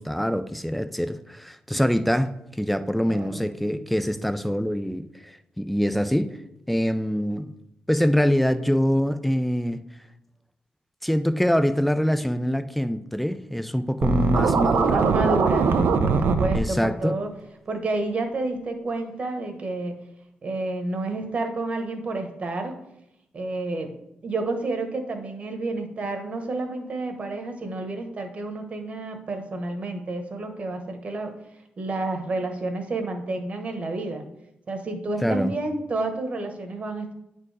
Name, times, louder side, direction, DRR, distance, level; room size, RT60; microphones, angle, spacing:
voice 1, 0.0-6.3 6.7-7.5 7.9-9.9 11.0-15.0 16.5-17.2 35.2-35.5, equal, ahead, 11 dB, 0.4 m, -24 dB
voice 2, 3.1-3.5 14.8-15.7 16.0-17.3 17.7-20.0 20.4-22.8 23.3-23.9 24.2-31.3 31.8-34.2 34.7-37.1, right 2 dB, 40° right, 5 dB, 1.2 m, -30 dB
Scratching (performance technique), 14.0-16.6, right 4 dB, 80° right, 0.7 m, -21 dB
9.8 x 4.6 x 4.8 m, 0.81 s
wide cardioid pair, 145°, 3 cm